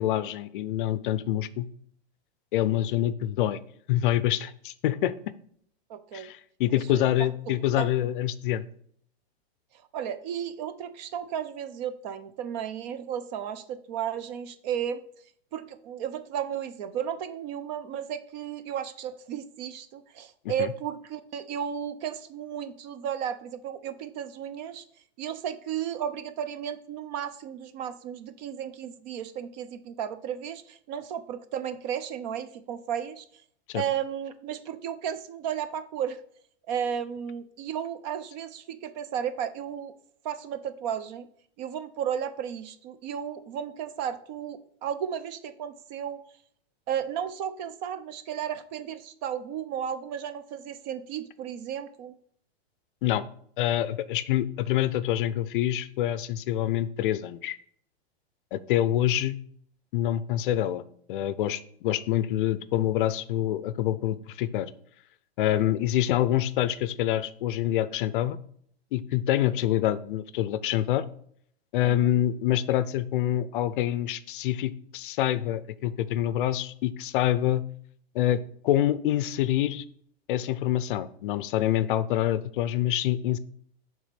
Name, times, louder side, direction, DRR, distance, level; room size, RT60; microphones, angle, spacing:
voice 1, 0.0-1.7 2.5-3.6 3.9-5.1 6.1-8.6 20.6-20.7 33.7-33.8 53.0-53.2 53.6-57.6 58.5-59.3 59.9-60.8 61.1-64.7 65.4-68.4 68.9-71.1 71.7-77.6 78.1-79.8 80.3-83.4, left 12 dB, 55° left, 15 dB, 0.5 m, -26 dB
voice 2, 5.9-6.3 6.7-7.3 7.8-7.9 9.9-15.0 15.5-24.8 25.2-33.2 33.7-36.2 36.7-39.9 40.2-41.3 41.6-46.2 46.9-52.1 71.8-72.1, right 9 dB, 45° right, 12 dB, 0.6 m, -34 dB
6.1 x 3.6 x 5.8 m, 0.63 s
hypercardioid pair, 145°, 32 cm